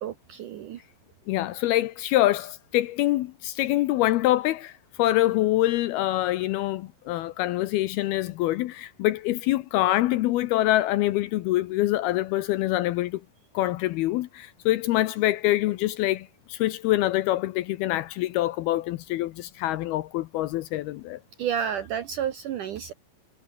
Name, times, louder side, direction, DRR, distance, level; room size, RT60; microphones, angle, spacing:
voice 1, 0.0-0.8 21.4-22.9, right 9 dB, 70° right, 2.0 m, -30 dB
voice 2, 1.3-4.7 5.0-13.2 13.5-21.2, left 15 dB, 75° left, 2.4 m, -25 dB
omnidirectional pair, 5.0 m